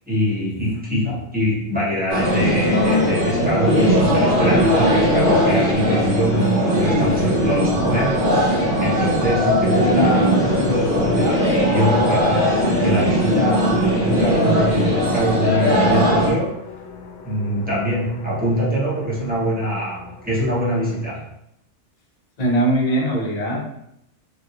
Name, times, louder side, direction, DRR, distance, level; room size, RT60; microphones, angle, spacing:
voice 1, 0.1-8.2 8.8-16.7 17.2-21.3, equal, 10° right, -8 dB, 0.9 m, -23 dB
voice 2, 0.6-1.2 22.4-23.6, right 1 dB, 40° left, -1 dB, 0.6 m, -22 dB
sound 1, 2.1-16.3, equal, 45° right, 0.9 m, -19 dB
sound 2, 4.0-21.0, left 4 dB, 70° left, 0.8 m, -36 dB
3.2 x 2.4 x 2.8 m, 0.76 s
omnidirectional pair, 1.3 m